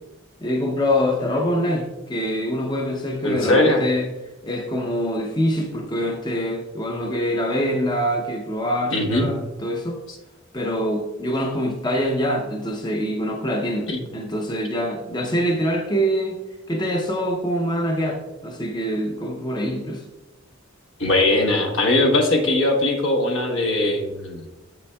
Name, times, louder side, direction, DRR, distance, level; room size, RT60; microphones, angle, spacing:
voice 1, 0.4-4.1 4.4-10.0 10.5-16.4 16.7-20.0, equal, 20° left, 2 dB, 0.6 m, -24 dB
voice 2, 3.2-3.8 8.9-9.3 13.9-14.0 21.0-24.4, left 2 dB, 70° left, 3 dB, 1.1 m, -20 dB
7.2 x 6.8 x 2.2 m, 1.0 s
head